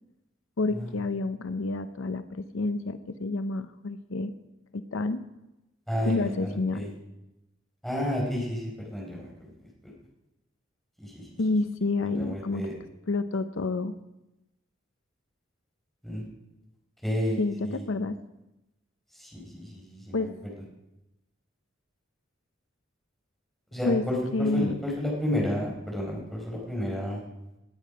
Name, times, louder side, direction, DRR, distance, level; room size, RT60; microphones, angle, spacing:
voice 1, 0.6-4.3 4.7-5.2 6.0-6.9 11.4-12.7 13.1-13.9 17.4-18.2 20.1-20.3 23.9-24.0 24.3-24.8, left 3 dB, 85° left, 11 dB, 0.7 m, -29 dB
voice 2, 5.9-6.9 7.8-9.5 9.8-9.9 11.0-11.3 12.2-12.7 16.0-16.2 17.0-17.8 19.2-20.3 23.7-27.2, left 1 dB, ahead, -3 dB, 4.4 m, -31 dB
18.5 x 9.4 x 5.2 m, 0.95 s
head